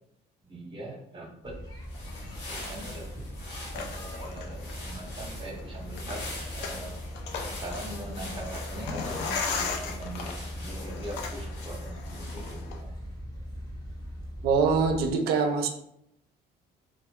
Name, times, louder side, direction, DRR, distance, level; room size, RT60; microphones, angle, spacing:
voice 1, 0.5-1.6 2.5-3.1 3.7-6.3 6.5-7.0 7.6-12.9, right 1 dB, 30° right, 0 dB, 0.7 m, -42 dB
sound 1, 1.4-15.1, equal, 25° left, 0.7 m, -40 dB
sound 2, 1.7-12.8, left 2 dB, 75° left, 1.1 m, -44 dB
sound 3, 1.9-12.8, left 5 dB, 90° left, 0.4 m, -39 dB
voice 2, 14.4-15.7, right 5 dB, 70° right, 6 dB, 0.4 m, -24 dB
2.1 x 2.0 x 2.9 m, 0.76 s
cardioid pair, 110°, 17 cm